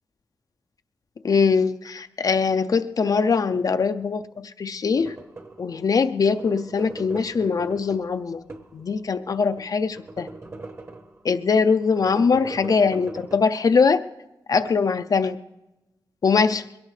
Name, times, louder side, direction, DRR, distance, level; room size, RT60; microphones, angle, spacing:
voice 1, 1.2-5.2 5.6-8.4 8.7-10.3 11.2-14.0 14.5-15.4 16.2-16.6, left 5 dB, 50° left, 9 dB, 0.4 m, -22 dB
sound 1, 4.9-5.7 6.2-8.8 9.3-11.3 11.8-13.4, right 3 dB, 30° right, 1.1 m, -40 dB
22.0 x 17.5 x 3.2 m, 1.0 s
wide cardioid pair, 170°, 8 cm